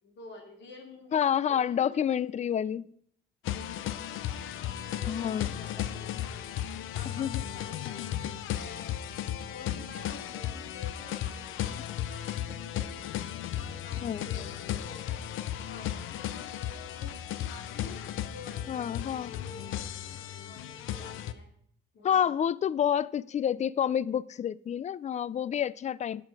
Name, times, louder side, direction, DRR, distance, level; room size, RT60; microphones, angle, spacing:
voice 1, 0.0-2.2 3.9-4.1 4.8-6.5 6.9-8.9 9.5-13.1 13.5-19.8 20.2-21.5 21.9-22.4, left 3 dB, 65° left, 2.9 m, -50 dB
voice 2, 1.1-2.9 5.1-5.5 7.1-7.4 14.0-14.3 18.7-19.3 22.0-26.3, left 9 dB, 35° left, 0.4 m, -28 dB
sound 1, 3.5-21.3, left 11 dB, 85° left, 0.6 m, -35 dB
12.0 x 8.5 x 4.7 m
cardioid pair, 90°, 20 cm